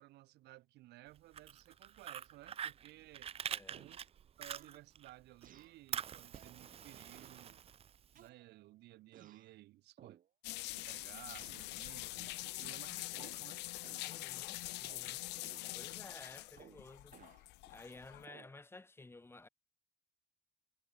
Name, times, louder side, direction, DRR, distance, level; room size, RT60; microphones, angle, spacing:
voice 1, 0.0-3.3 3.7-4.0 4.4-7.6 8.1-10.2 10.9-13.6, right 17 dB, 80° right, 4.3 m, -57 dB
Fire, 1.2-5.1 5.4-8.2, right 9 dB, 35° right, 0.5 m, -45 dB
voice 2, 3.5-3.9 14.0-15.3 15.7-17.2 17.7-19.5, left 2 dB, 15° left, 2.1 m, -54 dB
sound 1, 3.7-4.1 4.5-4.8 5.4-5.8 6.3-6.6 7.1-7.5 8.2-8.7 9.1-9.5 10.0-10.3 10.7-11.2 11.4-11.7 12.6-13.5 13.8-14.2 14.8-15.1 15.4-15.8 16.6-17.5 18.3-18.6, right 10 dB, 55° right, 4.2 m, -60 dB
sound 2, 10.4-18.3, left 20 dB, 85° left, 1.0 m, -44 dB
cardioid pair, 110°, 17 cm